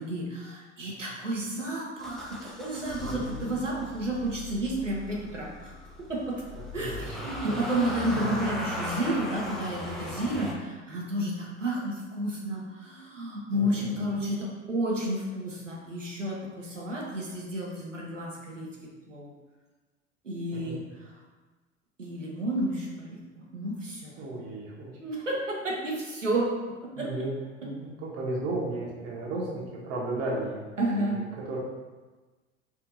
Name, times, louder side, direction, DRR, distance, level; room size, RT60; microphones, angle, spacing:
voice 1, 0.0-5.7 6.1-6.4 6.7-18.7 19.1-19.3 20.2-21.2 22.0-23.2 23.5-24.2 25.0-27.1 30.8-31.2, right 1 dB, 90° right, -4 dB, 0.8 m, -31 dB
Motor vehicle (road) / Engine starting, 2.0-10.5, left 1 dB, ahead, 0.4 m, -38 dB
voice 2, 3.0-3.5 6.8-7.5 8.1-8.4 13.5-14.1 20.5-20.8 24.2-24.9 27.0-27.3 27.6-31.6, right 2 dB, 45° right, -3 dB, 1.0 m, -35 dB
4.8 x 2.7 x 2.6 m, 1.3 s
figure-of-eight pair, 75°, 36 cm